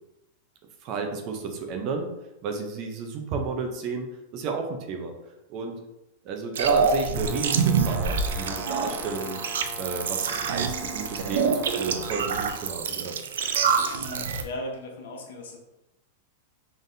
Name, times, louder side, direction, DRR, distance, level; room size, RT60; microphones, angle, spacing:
voice 1, 0.8-2.1 2.4-4.1 4.3-5.1 5.5-5.8 6.2-9.4 9.8-13.1, right 4 dB, 35° right, 4 dB, 0.6 m, -32 dB
sound 1, 6.6-14.4, right 5 dB, 90° right, 0.4 m, -26 dB
Brass instrument, 7.1-12.4, left 4 dB, 5° left, 0.3 m, -42 dB
voice 2, 14.0-15.6, left 1 dB, 85° left, 2 dB, 0.9 m, -37 dB
3.9 x 3.4 x 2.7 m, 0.93 s
supercardioid pair, 155°, 0 cm